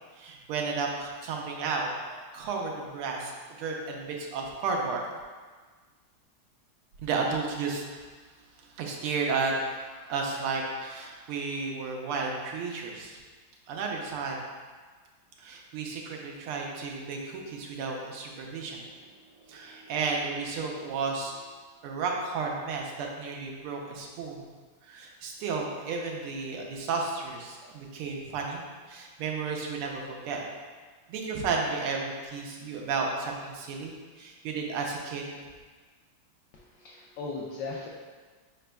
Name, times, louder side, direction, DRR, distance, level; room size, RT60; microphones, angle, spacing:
voice 1, 0.2-3.3 3.6-5.0 7.0-7.8 8.6-13.2 13.7-14.4 15.4-19.1 19.5-21.3 21.8-24.5 24.8-28.6 28.9-30.4 31.1-35.3, right 4 dB, 90° right, 0 dB, 1.6 m, -33 dB
voice 2, 36.5-37.9, left 3 dB, 80° left, -4 dB, 1.0 m, -38 dB
5.0 x 4.3 x 2.2 m, 1.4 s
omnidirectional pair, 2.4 m